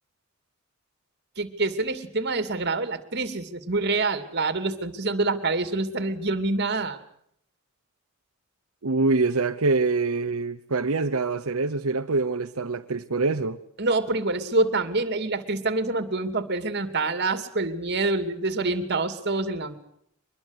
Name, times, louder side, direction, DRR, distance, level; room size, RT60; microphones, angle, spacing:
voice 1, 1.4-7.0 13.8-19.7, right 3 dB, 50° right, 2.6 m, -26 dB
voice 2, 8.8-13.6, right 3 dB, 90° right, 1.0 m, -25 dB
24.0 x 21.0 x 8.1 m
head